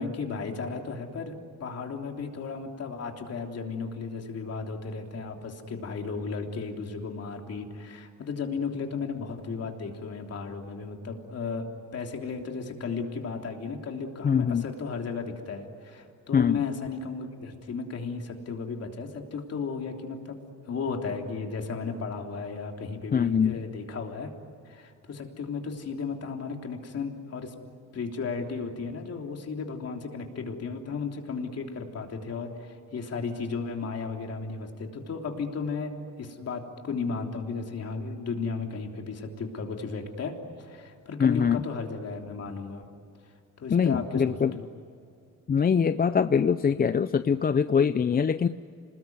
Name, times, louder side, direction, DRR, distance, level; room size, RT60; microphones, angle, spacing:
voice 1, 0.0-1.3 1.6-11.7 11.9-20.4 20.7-24.3 24.7-27.5 27.9-35.9 36.2-42.8 43.6-44.7, left 4 dB, 55° left, 3 dB, 3.4 m, -34 dB
voice 2, 14.2-14.6 16.3-16.6 23.1-23.6 41.2-41.6 43.7-44.5 45.5-48.5, left 7 dB, 30° left, 12 dB, 0.6 m, -23 dB
27.0 x 20.5 x 9.5 m, 2.4 s
cardioid pair, 90°, 30 cm